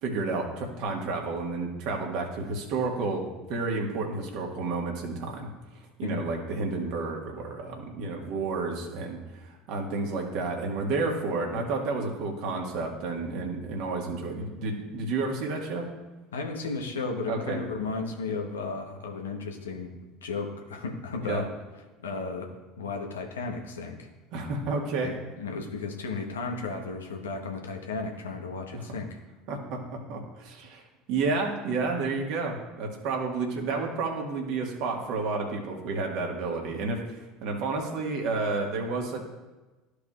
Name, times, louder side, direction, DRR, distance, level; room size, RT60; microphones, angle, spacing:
voice 1, 0.0-5.5 6.0-15.9 17.3-17.6 21.2-21.4 24.3-25.1 28.7-28.8 29.5-30.8 31.1-39.2, right 3 dB, 60° right, 1 dB, 1.7 m, -31 dB
voice 2, 16.3-19.9 20.2-21.5 22.0-24.1 25.0-29.2, left 4 dB, 80° left, 2 dB, 1.1 m, -34 dB
13.5 x 4.9 x 2.5 m, 1.2 s
figure-of-eight pair, 70°, 0 cm